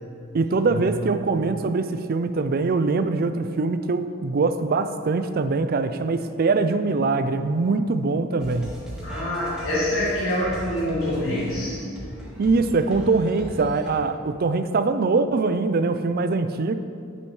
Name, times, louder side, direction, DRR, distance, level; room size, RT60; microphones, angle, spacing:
voice 1, 0.3-8.7 12.4-16.7, right 3 dB, 45° right, 10 dB, 0.4 m, -23 dB
sound 1, 8.4-13.9, equal, 5° right, 1.8 m, -38 dB
voice 2, 9.0-11.8, left 1 dB, 70° left, -9 dB, 2.0 m, -26 dB
10.0 x 8.2 x 3.2 m, 2.3 s
head